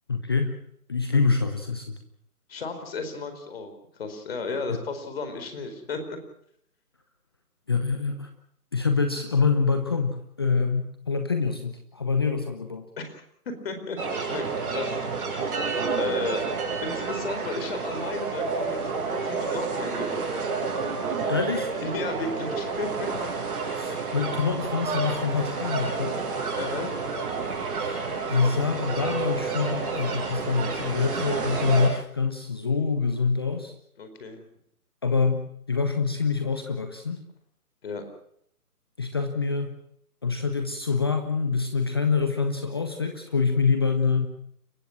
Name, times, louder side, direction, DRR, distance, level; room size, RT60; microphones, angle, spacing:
voice 1, 0.1-0.6 0.9-1.9 4.7-4.8 7.7-8.3 8.7-12.8 21.3-21.7 23.7-26.2 27.8-28.0 28.3-33.7 35.0-37.2 39.0-39.7 40.2-44.3, left 5 dB, 15° left, 7 dB, 0.8 m, -25 dB
voice 2, 2.5-3.7 4.0-6.2 13.0-13.2 13.6-14.0 14.3-15.0 15.4-15.6 16.0-16.4 16.8-20.3 21.8-23.3 23.9-24.0 26.6-27.0 34.0-34.4 37.8-38.0, left 3 dB, 40° left, 8 dB, 4.6 m, -34 dB
sound 1, 14.0-31.9, right 4 dB, 35° right, 7.6 m, -30 dB
30.0 x 15.5 x 6.0 m, 0.68 s
figure-of-eight pair, 150°, 46 cm